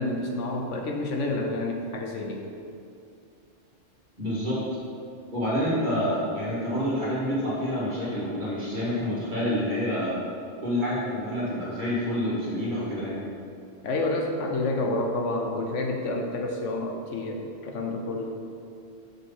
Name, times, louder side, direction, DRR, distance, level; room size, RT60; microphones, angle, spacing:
voice 1, 0.0-2.4 13.8-18.4, left 2 dB, 70° left, 2 dB, 1.0 m, -29 dB
voice 2, 4.2-4.6 5.3-10.2 10.6-13.3, equal, 40° right, -8 dB, 1.9 m, -28 dB
5.3 x 4.9 x 5.6 m, 2.5 s
omnidirectional pair, 1.3 m